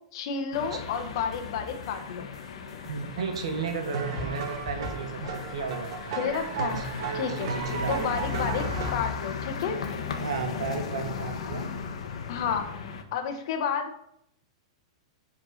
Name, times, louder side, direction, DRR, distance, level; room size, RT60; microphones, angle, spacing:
voice 1, 0.1-2.3 6.2-6.8 7.1-7.5 7.9-9.8 12.3-12.7 13.1-13.9, left 6 dB, 55° left, 4 dB, 1.2 m, -31 dB
sound 1, 0.5-13.0, left 6 dB, 80° left, 1.2 m, -36 dB
sound 2, 0.9-9.3, right 1 dB, 10° right, 2.6 m, -45 dB
voice 2, 2.8-6.2 6.8-8.1 10.2-11.6, right 5 dB, 85° right, 5 dB, 1.7 m, -34 dB
sound 3, 3.9-8.9, right 5 dB, 55° right, 1.6 m, -34 dB
7.8 x 4.5 x 6.4 m, 0.74 s
supercardioid pair, 155°, 3 cm